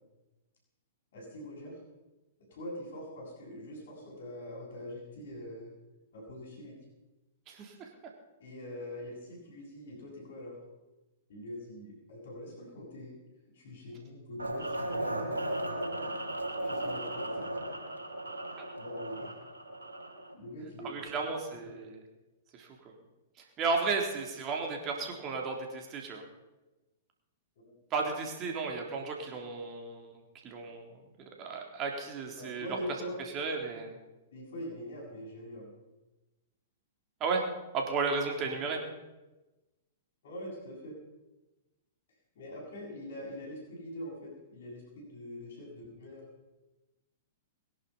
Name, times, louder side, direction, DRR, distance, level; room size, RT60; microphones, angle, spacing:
voice 1, 1.1-1.7 2.5-5.7 6.1-6.7 8.4-10.6 11.3-13.2 13.5-15.6 16.6-17.4 18.5-19.3 20.3-21.3 21.6-21.8 27.6-27.7 32.4-33.2 34.3-35.7 38.4-38.5 40.2-40.9 42.4-46.2, left 1 dB, 60° left, -8 dB, 7.3 m, -43 dB
voice 2, 7.5-7.9 20.8-22.0 22.5-22.9 23.6-26.2 27.9-30.1 30.4-30.8 31.2-32.7 33.3-34.0 37.2-37.5 37.7-38.8, right 4 dB, 35° right, 1 dB, 3.8 m, -34 dB
sound 1, 14.4-20.3, right 1 dB, 85° right, 2.8 m, -36 dB
22.5 x 11.0 x 5.7 m, 1.1 s
figure-of-eight pair, 110°, 0 cm